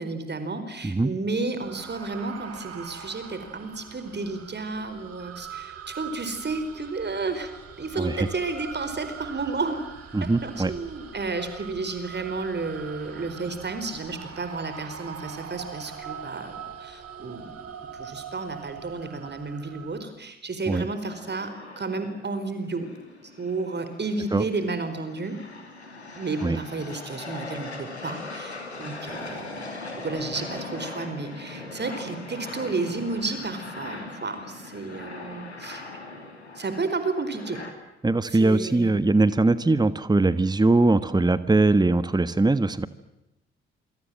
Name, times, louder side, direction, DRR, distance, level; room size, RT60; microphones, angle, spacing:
voice 1, 0.0-7.5 7.8-9.8 10.2-17.6 17.9-22.9 23.4-25.4 26.1-29.7 30.0-35.9 36.5-37.6 38.3-38.9, right 3 dB, 35° right, 10 dB, 4.7 m, -32 dB
sound 1, 1.6-20.0, right 7 dB, 50° right, 4.8 m, -42 dB
voice 2, 8.0-8.3 10.1-10.7 20.7-20.8 24.3-24.4 26.4-26.6 38.0-42.9, right 2 dB, 15° right, 15 dB, 1.4 m, -21 dB
sound 2, 20.8-37.7, left 3 dB, 90° left, 2.8 m, -40 dB
27.5 x 27.5 x 7.7 m, 0.93 s
figure-of-eight pair, 40°, 32 cm